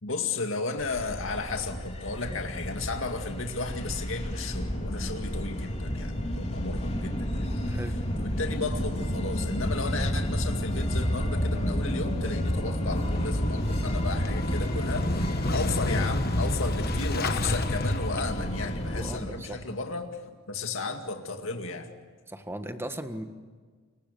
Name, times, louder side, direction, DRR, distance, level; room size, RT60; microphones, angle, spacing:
voice 1, 0.0-7.7 8.2-15.1 15.5-20.1 20.5-21.9, left 3 dB, 70° left, 4 dB, 2.2 m, -34 dB
sound 1, 0.8-19.2, equal, 30° left, 3.8 m, -30 dB
voice 2, 7.7-8.0 18.9-19.6 22.3-23.2, right 1 dB, 10° right, 7 dB, 1.6 m, -37 dB
Motorcycle / Engine starting, 12.8-18.7, left 2 dB, 50° left, 1.3 m, -32 dB
29.5 x 23.5 x 7.0 m, 1.5 s
head